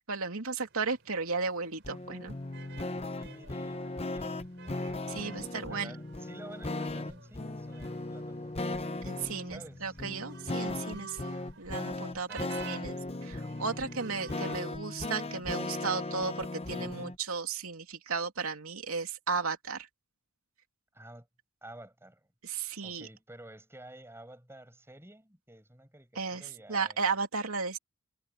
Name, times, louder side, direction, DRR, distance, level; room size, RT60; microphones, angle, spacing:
voice 1, 0.1-2.4 5.1-5.9 9.0-11.2 11.6-19.9 22.4-23.1 26.1-27.8, right 4 dB, 75° right, 2.9 m, -34 dB
sound 1, 0.7-14.6, right 5 dB, 55° right, 5.5 m, -52 dB
sound 2, 1.8-17.1, left 2 dB, 30° left, 0.9 m, -37 dB
voice 2, 3.1-4.5 5.2-8.9 9.5-10.0 12.1-12.7 20.9-21.3 21.6-22.3 22.8-27.1, right 1 dB, 10° right, 7.5 m, -51 dB
head